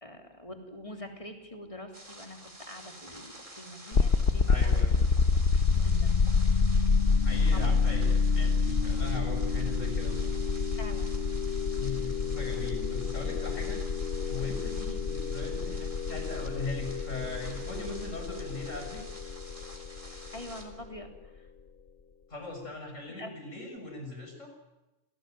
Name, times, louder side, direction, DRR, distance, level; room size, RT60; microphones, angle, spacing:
voice 1, 0.0-4.9 5.5-6.2 7.5-7.7 10.7-11.2 20.3-21.5 23.1-23.3, left 1 dB, 25° left, 3 dB, 3.5 m, -45 dB
sound 1, 1.9-20.6, right 1 dB, 25° right, 3.7 m, -49 dB
sound 2, 3.9-20.8, left 4 dB, 50° left, 1.2 m, -28 dB
voice 2, 4.5-5.1 7.2-10.2 11.7-13.8 14.3-19.0 22.3-24.5, left 3 dB, 80° left, 3 dB, 6.9 m, -39 dB
28.0 x 18.5 x 9.2 m, 1.0 s
omnidirectional pair, 1.3 m